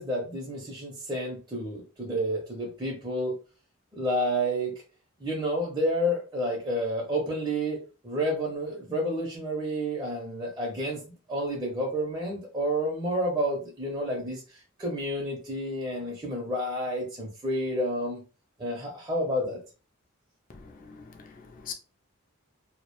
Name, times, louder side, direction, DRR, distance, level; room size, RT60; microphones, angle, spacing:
voice 1, 0.0-3.3 3.9-4.7 5.2-11.0 11.3-18.2 18.6-19.6, equal, 20° right, 0.5 m, -30 dB
voice 2, 20.5-21.7, left 7 dB, 40° left, 0.3 m, -43 dB
2.4 x 2.0 x 2.9 m
head